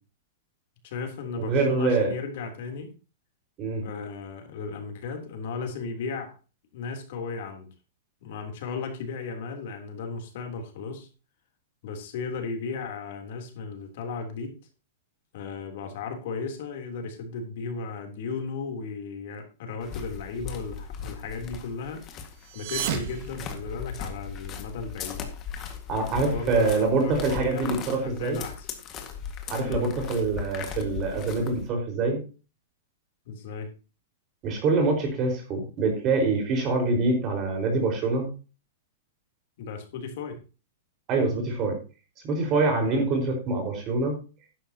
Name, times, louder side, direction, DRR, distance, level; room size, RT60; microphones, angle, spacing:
voice 1, 0.8-2.9 3.8-6.3 6.7-7.7 8.2-11.1 11.8-14.6 15.3-22.0 22.5-25.2 26.1-27.7 28.0-28.7 29.6-29.9 33.3-33.7 39.6-40.4 42.8-43.1, left 4 dB, 60° left, 4 dB, 3.4 m, -35 dB
voice 2, 1.4-2.1 3.6-3.9 25.9-28.4 29.5-32.2 34.4-38.3 41.1-41.8 42.2-44.2, right 3 dB, 30° right, 3 dB, 4.8 m, -25 dB
sound 1, 19.8-31.7, left 7 dB, 30° left, 1.9 m, -38 dB
sound 2, 22.4-24.3, right 10 dB, 55° right, 1.5 m, -34 dB
12.5 x 10.5 x 2.9 m, 0.33 s
hypercardioid pair, 150°, 0 cm